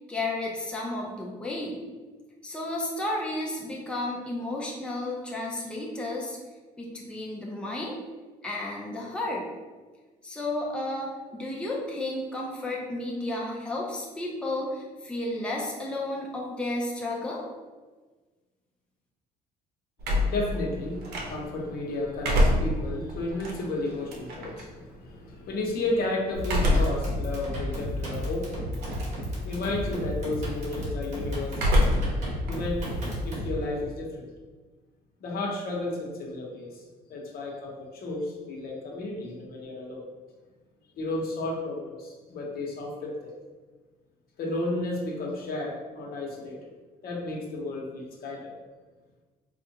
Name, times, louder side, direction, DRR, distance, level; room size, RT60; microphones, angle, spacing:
voice 1, 0.1-1.8 2.4-6.4 6.8-8.0 8.4-9.4 10.2-17.5, left 2 dB, 5° left, -3 dB, 0.6 m, -32 dB
voice 2, 20.0-32.1 32.4-32.9 33.2-34.3 35.2-36.8 37.1-40.0 41.0-43.3 44.4-46.7 47.0-48.5, left 2 dB, 65° left, -1 dB, 0.9 m, -33 dB
sound 1, 20.0-21.6 22.0-24.6 26.4-27.1 27.6-27.7 28.7-29.2 29.5-30.0 31.5-32.2 32.5-33.9, left 1 dB, 70° right, 0.8 m, -25 dB
sound 2, 26.3-33.6, equal, 40° right, 1.5 m, -33 dB
4.4 x 2.4 x 2.9 m, 1.3 s
cardioid pair, 110°, 17 cm